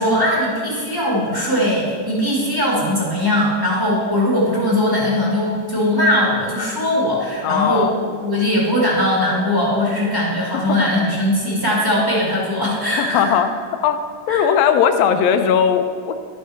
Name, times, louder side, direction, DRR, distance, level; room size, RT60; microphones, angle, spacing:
voice 1, 0.0-7.9 8.2-13.3 14.3-14.4, left 1 dB, 10° right, -6 dB, 1.2 m, -20 dB
voice 2, 7.4-7.9 10.7-11.1 13.0-13.5 13.8-14.0 14.3-16.1, left 8 dB, 75° left, 8 dB, 1.7 m, -18 dB
11.5 x 6.4 x 3.4 m, 2.1 s
omnidirectional pair, 3.4 m